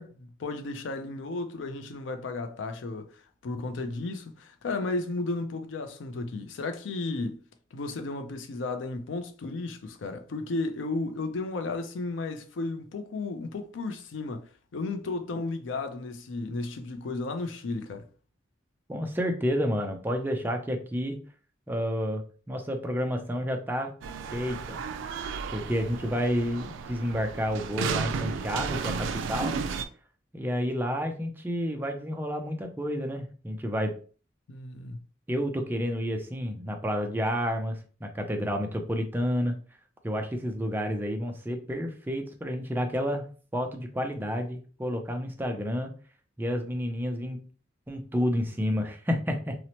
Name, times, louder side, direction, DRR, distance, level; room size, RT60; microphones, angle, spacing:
voice 1, 0.0-7.4 7.7-18.0 34.5-35.0, left 3 dB, 90° left, 0.4 m, -34 dB
voice 2, 18.9-21.2 21.7-23.9 24.3-24.8 25.5-29.6 30.3-34.0 35.3-39.6 40.0-43.3 43.5-45.9 46.4-47.4 47.9-49.6, equal, 10° right, 0.4 m, -30 dB
sound 1, 24.0-29.8, right 6 dB, 85° right, 0.3 m, -33 dB
2.8 x 2.0 x 2.8 m
head